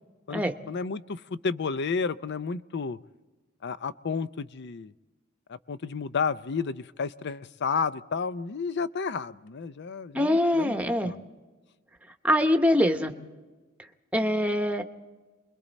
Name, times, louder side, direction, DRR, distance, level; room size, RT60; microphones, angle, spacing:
voice 1, 0.3-3.0 3.6-4.9 5.7-10.7 11.0-11.2, left 5 dB, 55° left, 15 dB, 0.5 m, -31 dB
voice 2, 10.1-11.1 12.2-13.1 14.1-14.8, left 1 dB, 5° right, 6 dB, 0.9 m, -23 dB
28.5 x 22.0 x 4.1 m, 1.3 s
head